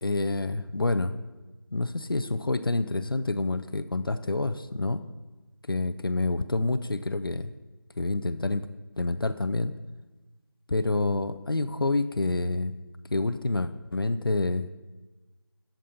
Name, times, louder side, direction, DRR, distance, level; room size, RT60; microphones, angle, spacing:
voice 1, 0.0-1.1 1.7-5.0 5.7-7.5 8.0-8.7 9.0-9.7 10.7-12.7 13.1-14.7, left 2 dB, 65° left, 12 dB, 0.5 m, -27 dB
13.0 x 7.4 x 2.8 m, 1.2 s
figure-of-eight pair, 170°, 13 cm